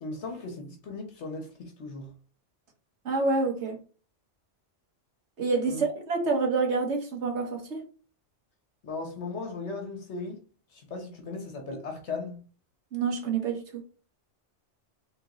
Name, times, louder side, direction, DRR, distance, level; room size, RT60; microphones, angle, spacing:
voice 1, 0.0-2.1 5.7-5.9 8.8-10.4 10.7-12.4, left 3 dB, 75° left, 1.3 m, -37 dB
voice 2, 3.0-3.8 5.4-7.8 12.9-13.8, right 4 dB, 70° right, 1.5 m, -27 dB
3.8 x 3.7 x 3.0 m
omnidirectional pair, 1.2 m